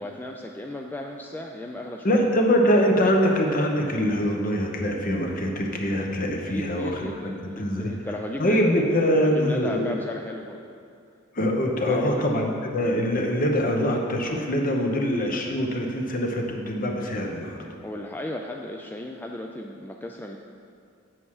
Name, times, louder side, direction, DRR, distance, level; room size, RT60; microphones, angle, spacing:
voice 1, 0.0-2.2 6.5-8.7 9.0-10.6 11.8-12.3 17.8-20.4, left 1 dB, 10° left, 1 dB, 0.3 m, -35 dB
voice 2, 2.0-7.9 8.4-9.9 11.3-17.6, equal, 45° left, 2 dB, 1.0 m, -24 dB
7.8 x 7.2 x 4.8 m, 2.3 s
head